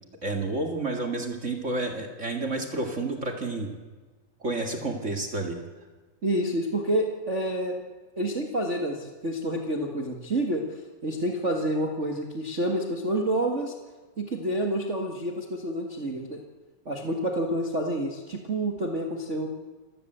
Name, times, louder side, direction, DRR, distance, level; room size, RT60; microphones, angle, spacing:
voice 1, 0.2-3.7 4.4-5.6, right 2 dB, 30° right, 3 dB, 1.3 m, -30 dB
voice 2, 6.2-7.8 8.1-13.7 14.2-16.4 16.8-19.5, right 1 dB, 80° right, 2 dB, 0.6 m, -28 dB
28.0 x 14.5 x 8.0 m, 1.3 s
omnidirectional pair, 4.5 m